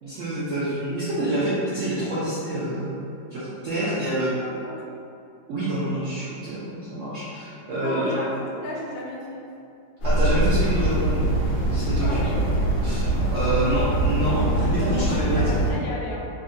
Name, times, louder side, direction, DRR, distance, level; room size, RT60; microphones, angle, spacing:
voice 1, 0.0-3.0 3.3-4.3 5.5-8.2 10.0-11.4 11.7-12.2 12.8-15.6, right 1 dB, 75° right, -11 dB, 0.7 m, -27 dB
voice 2, 4.4-4.9 7.7-9.5 12.0-12.4 15.1-16.3, left 2 dB, 85° left, -3 dB, 1.3 m, -34 dB
sound 1, 10.0-15.7, right 1 dB, 65° left, 1.3 m, -23 dB
3.6 x 2.1 x 2.5 m, 2.5 s
omnidirectional pair, 2.0 m